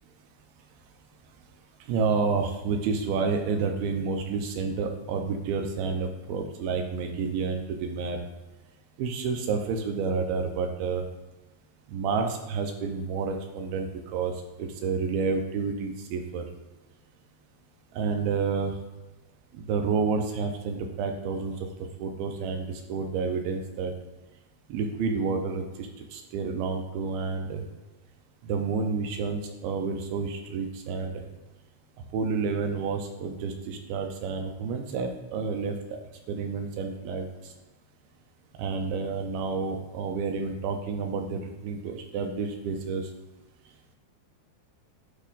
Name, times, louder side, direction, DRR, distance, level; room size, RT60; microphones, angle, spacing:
voice 1, 1.9-8.2 9.0-11.0 11.9-14.3 14.6-16.4 17.9-18.7 19.5-21.5 22.0-23.9 24.7-27.6 28.5-31.2 32.1-35.8 36.3-37.5 38.6-43.1, right 5 dB, 80° right, 4 dB, 2.3 m, -29 dB
8.2 x 3.3 x 3.9 m, 1.2 s
omnidirectional pair, 4.6 m